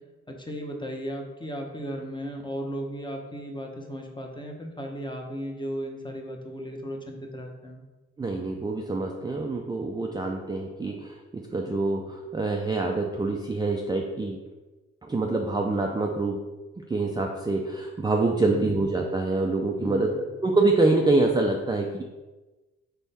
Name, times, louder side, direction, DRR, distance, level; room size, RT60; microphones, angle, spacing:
voice 1, 0.3-7.8 18.4-18.7 19.8-20.2, equal, 15° left, 3 dB, 0.8 m, -36 dB
voice 2, 8.2-11.2 11.5-14.4 15.0-16.4 16.9-22.0, right 2 dB, 15° right, 1 dB, 0.4 m, -25 dB
3.5 x 3.4 x 4.1 m, 1.2 s
cardioid pair, 75°, 31 cm